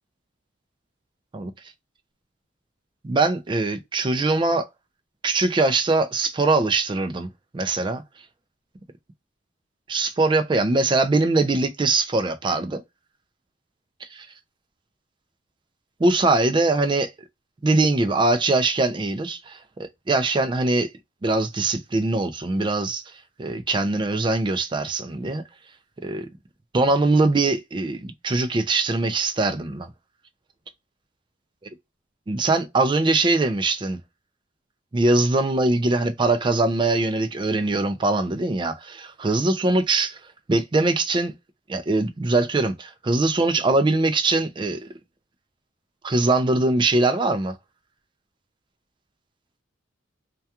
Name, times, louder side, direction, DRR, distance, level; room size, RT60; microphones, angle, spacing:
voice 1, 3.0-4.7 5.2-7.3 7.5-8.0 9.9-12.8 14.0-14.3 16.0-17.1 17.6-20.9 21.2-23.0 23.4-25.4 26.0-26.3 26.7-29.9 32.3-34.0 34.9-40.2 40.5-41.3 41.7-44.9 46.0-47.5, right 2 dB, 25° right, 0.3 m, -22 dB
2.3 x 2.3 x 2.7 m
head